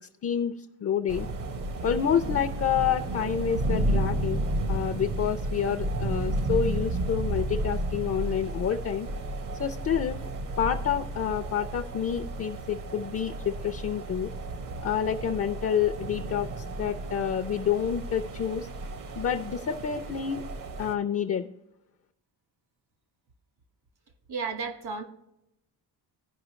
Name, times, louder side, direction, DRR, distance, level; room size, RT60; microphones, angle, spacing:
voice 1, 0.2-0.5 0.8-1.3 1.8-4.4 4.7-9.1 9.6-10.2 10.6-14.3 14.8-18.7 19.1-20.4 20.8-21.5, left 8 dB, 40° left, 6 dB, 0.4 m, -28 dB
sound 1, 1.1-20.9, right 2 dB, 50° right, 0.8 m, -32 dB
voice 2, 24.3-25.0, right 5 dB, 70° right, 5 dB, 1.6 m, -33 dB
16.5 x 5.6 x 3.1 m, 0.85 s
wide cardioid pair, 175°, 41 cm